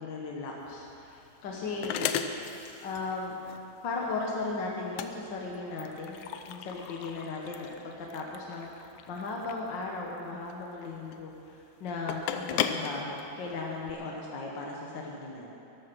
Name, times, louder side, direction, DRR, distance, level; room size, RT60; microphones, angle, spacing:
voice 1, 0.0-2.2 2.8-3.4 3.8-11.3 11.8-15.5, left 3 dB, 55° left, -1 dB, 1.4 m, -36 dB
pouring coffee, 0.6-13.9, left 8 dB, 85° left, 2.1 m, -37 dB
14.0 x 12.5 x 6.1 m, 2.8 s
omnidirectional pair, 3.4 m